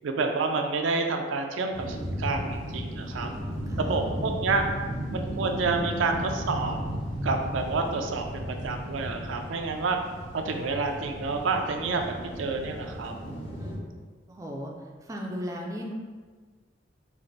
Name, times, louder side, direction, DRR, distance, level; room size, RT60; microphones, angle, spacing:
voice 1, 0.0-3.3 3.8-4.7 5.1-6.8 7.2-10.0 10.3-13.1, right 4 dB, 90° right, 4 dB, 0.4 m, -29 dB
sound 1, 1.7-13.8, equal, 55° left, 1.4 m, -35 dB
voice 2, 3.3-3.9 13.6-13.7 14.3-14.7 15.0-15.9, equal, 15° right, 0 dB, 0.3 m, -37 dB
3.2 x 2.5 x 3.9 m, 1.4 s
head